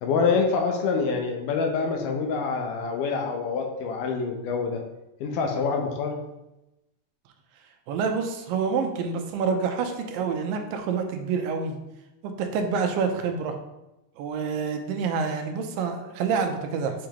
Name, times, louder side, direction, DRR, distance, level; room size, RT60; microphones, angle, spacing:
voice 1, 0.0-4.8 5.2-6.2, left 5 dB, 75° left, 3 dB, 2.3 m, -26 dB
voice 2, 7.9-11.8 12.2-13.5 14.2-16.9, right 5 dB, 85° right, 5 dB, 2.4 m, -27 dB
7.0 x 4.9 x 3.0 m, 0.94 s
omnidirectional pair, 3.9 m